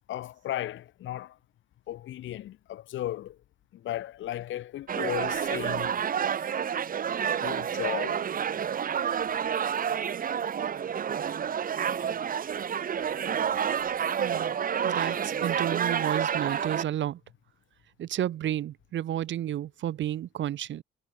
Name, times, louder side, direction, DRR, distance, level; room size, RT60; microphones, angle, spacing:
voice 1, 0.1-1.4 1.9-3.4 3.7-5.9 7.2-8.3 8.6-8.7 14.3-14.4, left 13 dB, 75° left, 1.6 m, -35 dB
sound 1, 4.9-16.8, right 8 dB, 45° right, 1.0 m, -29 dB
voice 2, 14.2-14.5 14.8-17.2 18.0-20.8, right 11 dB, 70° right, 1.6 m, -31 dB
cardioid pair, 90°, 20 cm